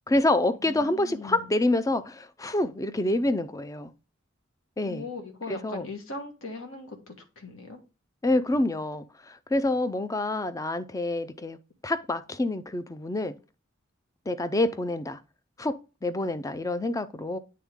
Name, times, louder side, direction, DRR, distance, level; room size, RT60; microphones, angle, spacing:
voice 1, 0.1-3.9 4.8-5.1 5.5-5.9 8.2-11.6 11.8-13.3 14.3-15.2 15.6-15.8 16.0-17.4, left 2 dB, 15° left, 0.4 m, -27 dB
voice 2, 0.6-1.5 4.9-7.8, left 3 dB, 80° left, 1.4 m, -39 dB
8.6 x 3.6 x 3.5 m
head